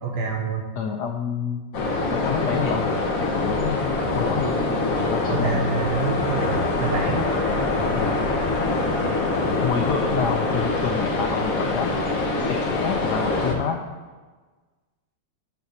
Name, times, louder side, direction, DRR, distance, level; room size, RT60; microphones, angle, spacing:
voice 1, 0.0-0.6 5.3-7.2, right 4 dB, 65° right, 2 dB, 1.2 m, -27 dB
voice 2, 0.8-1.7 2.1-2.9 3.2-4.6 5.0-5.6 7.6-8.2 9.6-11.9 12.5-13.8, left 7 dB, 85° left, 4 dB, 0.9 m, -28 dB
sound 1, 1.7-13.5, left 2 dB, 50° left, 1.1 m, -24 dB
6.8 x 4.1 x 6.3 m, 1.3 s
omnidirectional pair, 2.4 m